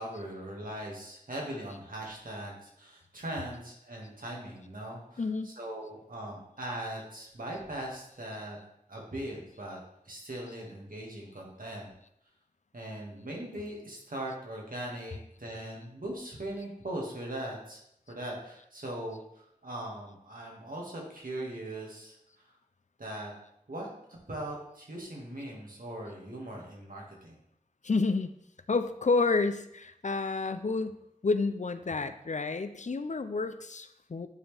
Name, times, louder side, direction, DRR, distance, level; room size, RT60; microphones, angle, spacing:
voice 1, 0.0-8.6 8.9-9.8 10.1-11.9 12.7-17.8 18.1-22.5 23.0-23.3 23.7-27.4, right 1 dB, 80° right, -2 dB, 1.9 m, -40 dB
voice 2, 5.2-5.5 27.8-28.3 28.7-31.0 31.2-34.3, left 3 dB, 60° left, 10 dB, 0.5 m, -29 dB
9.2 x 4.3 x 3.4 m, 0.76 s
wide cardioid pair, 45°, 14 cm